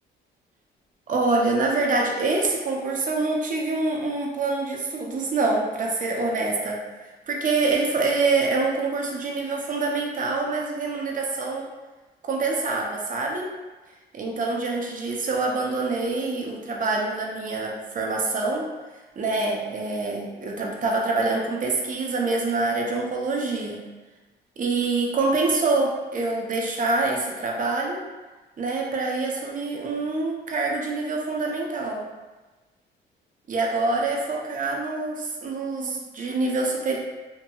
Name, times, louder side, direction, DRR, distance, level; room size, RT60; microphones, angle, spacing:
voice 1, 1.1-11.7 12.2-13.5 14.1-18.7 19.2-23.8 24.6-28.0 28.6-32.1 33.5-37.0, right 3 dB, 40° right, -1 dB, 0.6 m, -25 dB
2.7 x 2.6 x 2.3 m, 1.2 s
cardioid pair, 90°, 20 cm